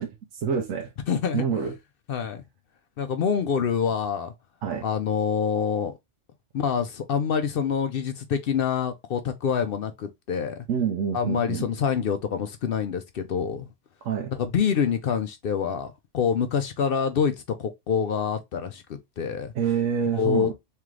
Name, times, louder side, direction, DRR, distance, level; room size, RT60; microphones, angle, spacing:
voice 1, 0.0-0.9 1.3-1.7 4.6-4.9 10.7-11.7 14.0-14.3 19.5-20.5, right 7 dB, 90° right, 1.1 m, -27 dB
voice 2, 1.1-1.4 2.1-2.4 3.0-4.3 4.8-6.0 6.5-10.7 11.1-13.7 14.4-19.5 20.1-20.5, left 7 dB, 60° left, 0.6 m, -26 dB
3.7 x 3.3 x 3.1 m
omnidirectional pair, 1.3 m